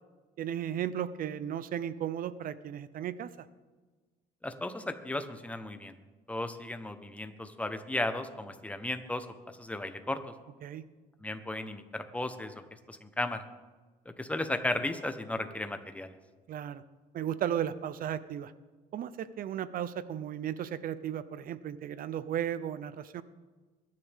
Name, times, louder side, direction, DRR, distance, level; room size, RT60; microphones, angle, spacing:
voice 1, 0.4-3.5 10.6-10.8 16.5-16.8 17.1-18.5 18.9-23.2, right 10 dB, 55° right, 15 dB, 0.7 m, -35 dB
voice 2, 4.4-5.9 6.3-9.3 9.6-10.2 11.2-12.6 12.9-13.4 14.0-16.1, left 1 dB, 10° left, 8 dB, 1.1 m, -35 dB
22.0 x 10.5 x 3.7 m, 1.3 s
cardioid pair, 110°, 17 cm